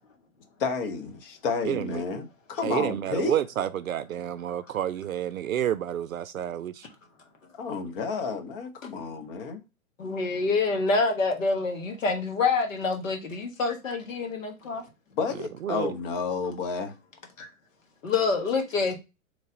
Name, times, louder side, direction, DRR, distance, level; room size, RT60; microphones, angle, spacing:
voice 1, 0.6-3.4 7.6-9.6 15.1-16.9, left 4 dB, 40° left, 1.0 m, -31 dB
voice 2, 1.6-2.3 2.6-6.9 15.6-15.9, right 10 dB, 75° right, 0.5 m, -30 dB
voice 3, 10.0-14.8 17.4-17.5 18.0-19.0, left 4 dB, 65° left, 1.3 m, -26 dB
4.0 x 3.3 x 3.8 m
figure-of-eight pair, 110°, 42 cm